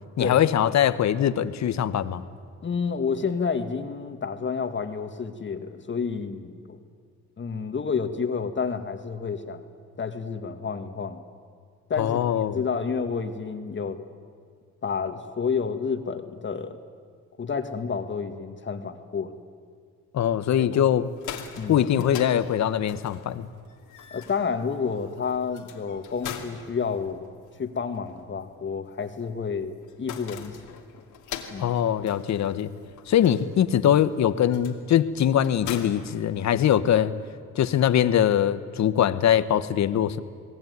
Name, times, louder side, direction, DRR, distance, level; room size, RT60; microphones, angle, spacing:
voice 1, 0.2-2.3 12.0-12.6 20.1-21.1 21.7-23.5 31.6-32.7 33.1-37.1 37.5-40.2, left 10 dB, 65° left, 13 dB, 1.2 m, -22 dB
voice 2, 2.6-6.8 7.4-9.6 10.0-11.2 11.9-12.2 12.5-14.0 14.8-16.8 17.4-19.3 20.6-20.8 21.6-22.1 24.1-27.3 27.6-30.8 31.5-31.7 33.2-33.3, left 5 dB, 40° left, 8 dB, 1.9 m, -30 dB
sound 1, 21.0-36.9, left 8 dB, 85° left, 2.6 m, -43 dB
29.0 x 20.0 x 9.5 m, 2.1 s
cardioid pair, 90°, 30 cm